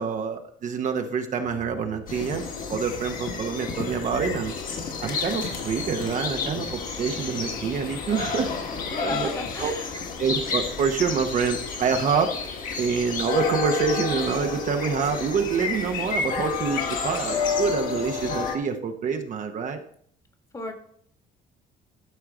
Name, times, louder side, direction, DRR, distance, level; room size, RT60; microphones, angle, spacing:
voice 1, 0.0-4.5 5.0-8.5 9.0-9.3 9.6-9.7 10.2-12.3 12.8-19.8, right 6 dB, 50° right, 5 dB, 1.0 m, -27 dB
sound 1, 1.4-9.2, left 4 dB, 85° left, 1.5 m, -45 dB
sound 2, 2.1-18.6, left 5 dB, 55° left, 1.6 m, -30 dB
voice 2, 8.9-9.9 20.5-20.7, left 2 dB, 20° left, 5 dB, 1.4 m, -35 dB
12.5 x 4.6 x 3.8 m, 0.62 s
cardioid pair, 110°, 17 cm